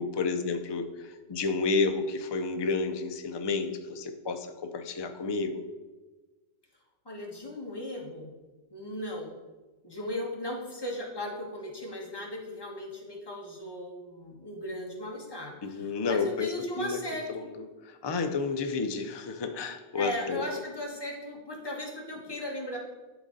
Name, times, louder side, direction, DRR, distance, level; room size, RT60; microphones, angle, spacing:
voice 1, 0.0-5.6 15.6-17.0 17.3-20.4, left 4 dB, 40° left, 7 dB, 0.4 m, -31 dB
voice 2, 7.0-8.3 8.7-9.4 9.8-17.5 19.9-22.8, left 1 dB, 20° left, -2 dB, 1.4 m, -37 dB
11.0 x 3.8 x 4.0 m, 1.2 s
omnidirectional pair, 1.3 m